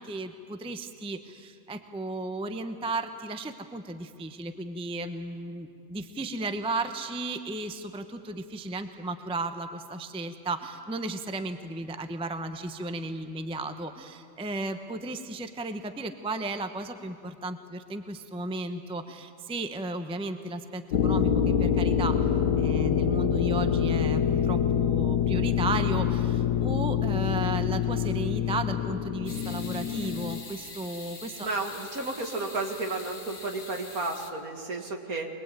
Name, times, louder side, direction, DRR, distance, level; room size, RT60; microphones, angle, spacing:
voice 1, 0.0-22.2 22.6-31.5, right 2 dB, 5° right, 8 dB, 0.7 m, -34 dB
sound 1, 20.9-30.4, left 8 dB, 80° left, 1.5 m, -26 dB
sound 2, 29.3-34.3, left 3 dB, 40° left, 2.0 m, -44 dB
voice 2, 31.4-35.3, right 3 dB, 60° right, 3 dB, 2.5 m, -32 dB
24.0 x 21.0 x 9.0 m, 2.4 s
omnidirectional pair, 1.7 m